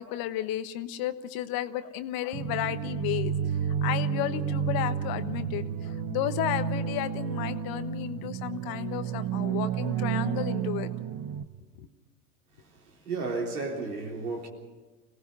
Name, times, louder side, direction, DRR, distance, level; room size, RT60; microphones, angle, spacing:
voice 1, 0.0-3.3 3.6-10.9 11.8-11.9, left 12 dB, 55° left, 1.3 m, -33 dB
sound 1, 2.3-11.4, right 8 dB, 50° right, 1.3 m, -31 dB
voice 2, 13.0-14.5, right 3 dB, 85° right, 3.7 m, -32 dB
26.0 x 18.0 x 5.6 m
hypercardioid pair, 80°, 44 cm